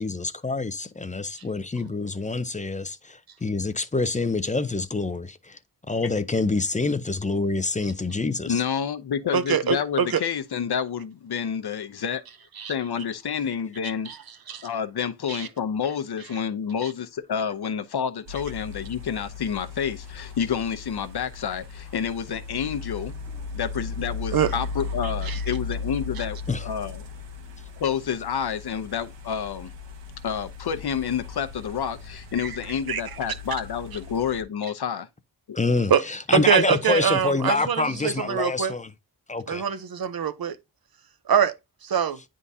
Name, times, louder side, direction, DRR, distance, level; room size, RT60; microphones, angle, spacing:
voice 1, 0.0-5.6 5.9-8.6 26.5-26.6 35.5-38.9 39.3-39.7, left 3 dB, 20° left, 0.5 m, -26 dB
voice 2, 8.5-12.2 12.7-14.1 14.6-23.1 23.5-27.0 27.8-29.7 30.2-35.1, left 7 dB, 65° left, 0.8 m, -29 dB
voice 3, 9.3-10.2 12.6-12.7 14.1-14.2 14.5-14.7 15.3-15.5 24.3-24.5 25.3-25.4 32.9-33.0 35.9-36.0 36.3-38.7 39.5-40.6 41.3-41.5 41.8-42.2, right 8 dB, 55° right, 0.7 m, -23 dB
sound 1, 18.3-34.4, left 4 dB, 90° right, 1.2 m, -37 dB
9.7 x 3.7 x 2.7 m
wide cardioid pair, 130°, 42 cm